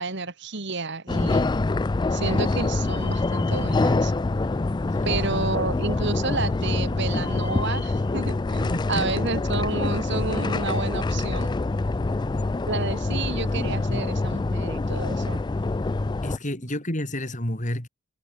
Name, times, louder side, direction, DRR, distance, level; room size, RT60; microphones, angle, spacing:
voice 1, 0.0-1.5 2.1-4.1 5.0-11.5 12.7-15.4, right 3 dB, 60° right, 2.6 m, -30 dB
sound 1, 1.1-16.4, left 2 dB, 20° left, 0.4 m, -25 dB
voice 2, 8.6-9.1 16.2-17.9, left 1 dB, 35° left, 4.9 m, -30 dB
head